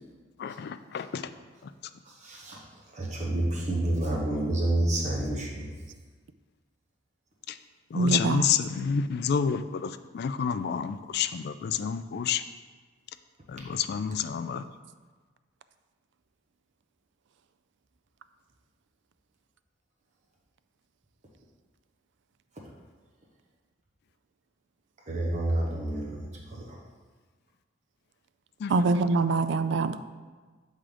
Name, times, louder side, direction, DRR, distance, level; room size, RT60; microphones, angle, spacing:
voice 1, 0.4-1.3 1.6-1.7 7.5-7.6 7.9-12.4 13.5-14.6 28.6-28.7, left 7 dB, 55° left, 12 dB, 0.3 m, -29 dB
voice 2, 2.0-5.7 25.1-26.8, right 1 dB, 40° right, -2 dB, 1.1 m, -29 dB
voice 3, 7.9-8.4 28.7-30.0, right 3 dB, 65° right, 11 dB, 0.4 m, -24 dB
7.5 x 3.7 x 5.0 m, 1.4 s
head